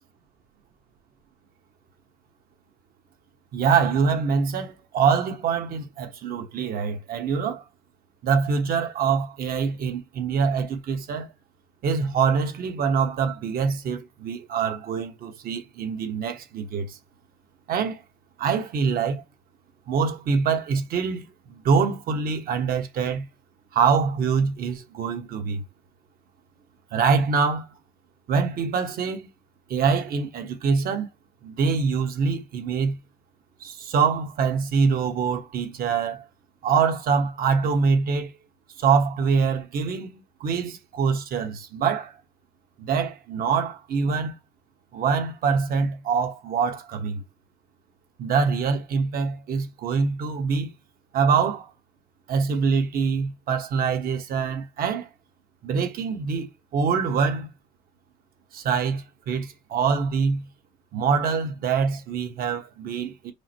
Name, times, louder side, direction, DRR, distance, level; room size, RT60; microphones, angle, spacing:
voice 1, 3.5-7.6 8.2-11.3 11.8-17.0 17.7-18.0 18.4-19.2 19.9-23.3 23.7-25.6 26.9-27.7 28.3-29.3 29.7-31.1 31.4-33.0 33.6-36.2 36.6-38.3 38.8-42.1 42.8-44.4 44.9-47.2 48.2-50.7 51.1-51.7 52.3-55.1 55.6-57.5 58.5-60.4 60.9-63.3, right 5 dB, 60° right, 1.2 m, -24 dB
4.8 x 2.1 x 4.4 m
cardioid pair, 110°, 17 cm